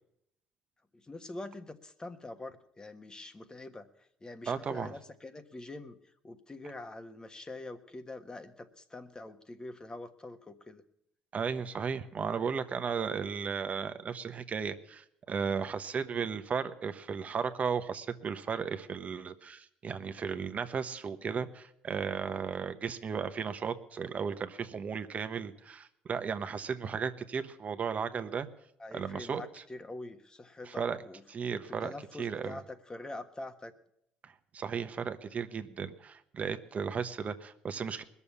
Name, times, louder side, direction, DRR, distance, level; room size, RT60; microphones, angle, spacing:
voice 1, 0.9-3.9 4.2-6.0 6.2-10.8 28.8-31.2 31.7-33.7, left 2 dB, 20° left, 9 dB, 1.4 m, -45 dB
voice 2, 4.5-4.9 11.3-28.5 28.9-29.6 30.6-31.0 31.3-31.9 32.2-32.6 34.2-38.0, right 6 dB, 45° right, 10 dB, 1.1 m, -35 dB
20.5 x 7.0 x 7.1 m, 0.76 s
supercardioid pair, 70°, 3 cm